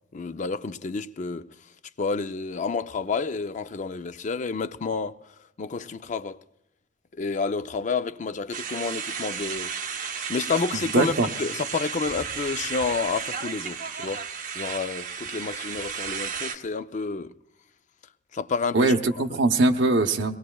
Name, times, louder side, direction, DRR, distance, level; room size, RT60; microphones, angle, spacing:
voice 1, 0.1-1.5 2.0-5.1 5.6-6.4 7.2-9.7 10.3-14.2 14.6-17.3 18.3-18.9, left 4 dB, 45° left, 0.5 m, -29 dB
sound 1, 8.5-16.6, right 6 dB, 50° right, 0.7 m, -33 dB
voice 2, 10.7-11.3 18.7-20.4, right 2 dB, 85° right, 0.8 m, -22 dB
22.5 x 18.5 x 2.3 m
head